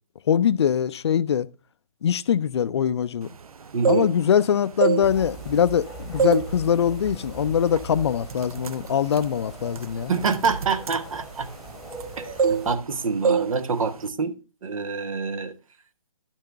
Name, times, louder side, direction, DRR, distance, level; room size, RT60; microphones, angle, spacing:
voice 1, 0.3-1.5 2.0-3.3 3.9-10.1, left 8 dB, 50° left, 0.4 m, -22 dB
sound 1, 3.6-4.4 4.7-5.8 6.2-6.5 6.9-7.1 7.8-7.9 8.2-12.1 12.4-12.9 13.2-13.5 13.8-14.1, right 6 dB, 90° right, 0.5 m, -25 dB
voice 2, 3.7-4.1 10.1-11.5 12.2-14.3 14.6-15.5, right 5 dB, 70° right, 1.0 m, -26 dB
sound 2, 5.0-12.8, right 2 dB, ahead, 1.3 m, -41 dB
11.5 x 5.8 x 3.4 m
hypercardioid pair, 155°, 18 cm